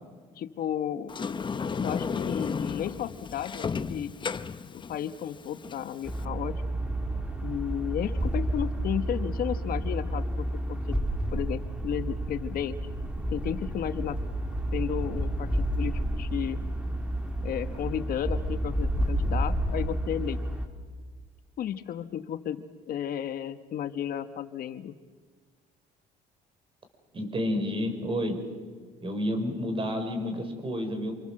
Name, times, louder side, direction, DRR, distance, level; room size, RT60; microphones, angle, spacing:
voice 1, 0.4-1.1 1.8-4.1 4.7-6.5 7.4-11.0 11.3-12.8 13.3-14.2 14.7-16.6 17.4-20.4 21.6-25.0, left 10 dB, 60° left, 11 dB, 1.2 m, -33 dB
Sliding door, 1.1-6.2, left 5 dB, 30° left, 0.9 m, -33 dB
sound 1, 6.0-20.7, right 1 dB, 5° right, 3.0 m, -30 dB
voice 2, 27.1-28.4 29.0-31.1, left 1 dB, 30° right, 6 dB, 5.9 m, -30 dB
27.0 x 26.5 x 7.7 m, 1.5 s
cardioid pair, 110°, 17 cm